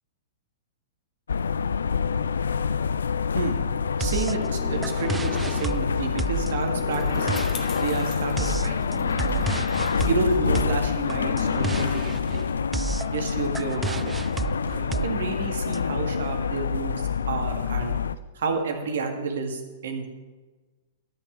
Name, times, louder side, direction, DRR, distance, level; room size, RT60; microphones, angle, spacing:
sound 1, 1.3-18.2, left 6 dB, 75° left, 0.4 m, -26 dB
sound 2, 4.0-15.8, right 5 dB, 10° right, 0.3 m, -32 dB
voice 1, 4.0-8.8 10.0-12.5 13.1-14.2 14.6-17.0 17.3-18.0 18.3-20.1, right 4 dB, 65° right, 5 dB, 1.8 m, -30 dB
Bicycle, 5.7-12.5, left 6 dB, 35° left, 1.9 m, -46 dB
13.0 x 6.0 x 7.3 m, 1.3 s
figure-of-eight pair, 105°, 0 cm